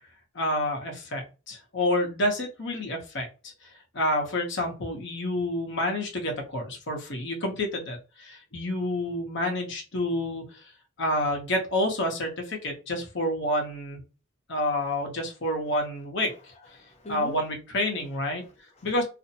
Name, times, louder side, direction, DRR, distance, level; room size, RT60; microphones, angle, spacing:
voice 1, 0.3-3.3 3.9-10.6 11.0-14.0 14.5-16.3 17.1-18.4 18.8-19.0, left 1 dB, 60° left, 0.8 m, -28 dB
voice 2, 15.4-15.8 16.2-17.5 18.0-18.1 18.4-19.0, left 1 dB, 35° left, 0.7 m, -45 dB
2.5 x 2.1 x 2.7 m
head